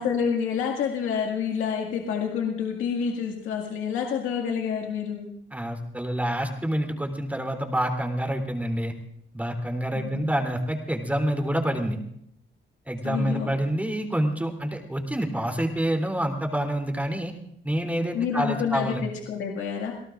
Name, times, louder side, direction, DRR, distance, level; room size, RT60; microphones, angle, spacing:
voice 1, 0.0-5.3 9.9-10.3 13.0-13.5 18.1-19.9, left 7 dB, 90° left, 0 dB, 2.0 m, -28 dB
voice 2, 5.5-8.9 9.3-12.0 12.9-17.3 17.6-19.0, right 1 dB, 5° right, 3 dB, 3.3 m, -27 dB
28.0 x 18.0 x 2.5 m, 0.71 s
cardioid pair, 90°, 20 cm